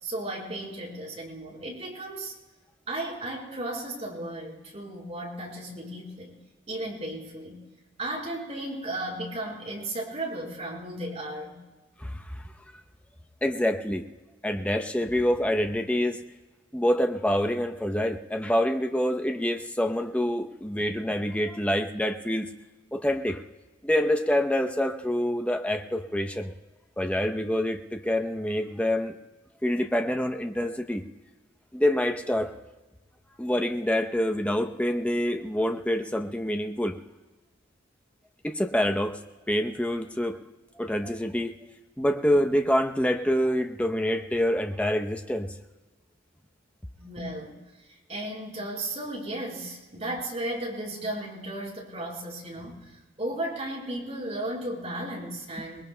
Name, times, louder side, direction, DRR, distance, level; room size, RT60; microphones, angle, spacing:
voice 1, 0.0-2.3 2.9-6.3 6.7-7.6 8.0-11.6 47.0-47.6 48.1-52.9 53.2-55.8, right 1 dB, 35° right, -3 dB, 4.2 m, -35 dB
voice 2, 12.0-12.4 13.4-14.0 14.4-16.2 16.7-22.5 22.9-23.4 23.8-26.5 27.0-29.1 29.6-31.0 31.7-32.5 33.4-37.0 38.4-39.2 39.5-40.4 40.8-41.6 42.0-45.5, left 1 dB, 5° left, 5 dB, 0.7 m, -26 dB
27.0 x 20.0 x 2.2 m, 1.2 s
head